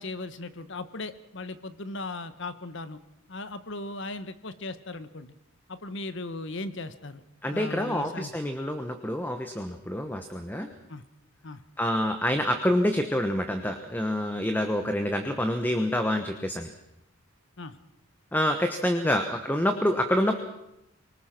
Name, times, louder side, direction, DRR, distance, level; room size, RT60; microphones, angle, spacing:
voice 1, 0.0-3.0 3.3-5.3 5.7-7.2 7.5-8.3 10.9-11.0 11.4-11.6 17.6-17.8, left 2 dB, 60° left, 13 dB, 1.2 m, -37 dB
voice 2, 7.4-10.7 11.8-16.7 18.3-20.4, equal, 10° left, 6 dB, 1.2 m, -27 dB
24.5 x 19.0 x 6.0 m, 0.86 s
head